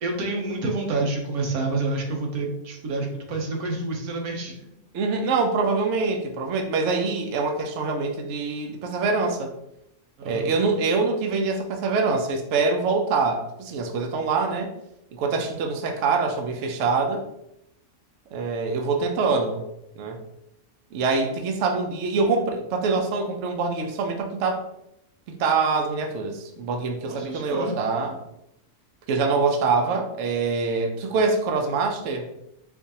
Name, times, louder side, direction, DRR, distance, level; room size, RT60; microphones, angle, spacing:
voice 1, 0.0-4.6 10.2-10.5 27.0-27.8, right 3 dB, 90° right, 1 dB, 1.3 m, -28 dB
voice 2, 4.9-9.5 10.2-14.7 15.1-17.2 18.3-19.6 20.0-20.2 20.9-24.6 25.3-28.2 29.1-32.3, right 4 dB, 65° right, 4 dB, 0.8 m, -24 dB
4.4 x 2.5 x 2.7 m, 0.81 s
omnidirectional pair, 1.5 m